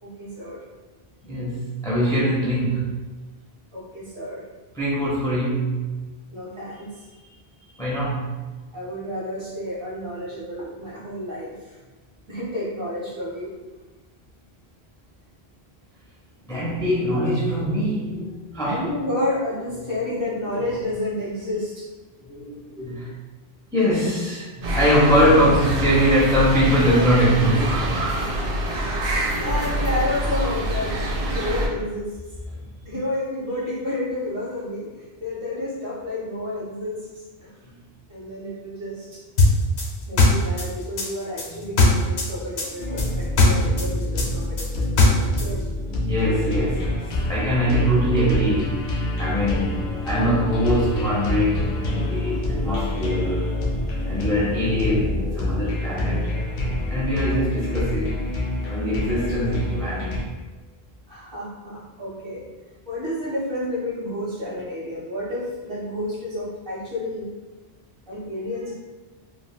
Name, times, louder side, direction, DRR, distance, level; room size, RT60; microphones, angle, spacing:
voice 1, 0.0-0.6 3.7-4.4 6.3-7.3 7.7-8.0 8.7-11.8 12.3-13.5 18.6-21.8 27.4-27.9 28.3-28.4 29.4-30.9 31.3-32.2 32.8-37.5 38.1-39.2 40.0-45.7 61.1-62.4 62.8-67.3 68.1-68.7, left 1 dB, 30° right, -7 dB, 0.8 m, -30 dB
voice 2, 1.2-3.0 4.7-5.8 7.8-8.3 16.5-18.9 22.2-23.1 23.7-27.6 41.5-41.6 45.9-53.6 54.1-56.6 56.9-58.2 58.7-60.1, equal, 5° left, -7 dB, 0.3 m, -22 dB
sound 1, 24.6-31.7, right 1 dB, 65° right, 0.7 m, -25 dB
sound 2, 39.4-42.3 42.6-45.5, left 2 dB, 90° left, 0.9 m, -18 dB
sound 3, 42.8-60.2, left 1 dB, 55° left, 0.7 m, -27 dB
3.4 x 2.3 x 2.2 m, 1.3 s
omnidirectional pair, 1.1 m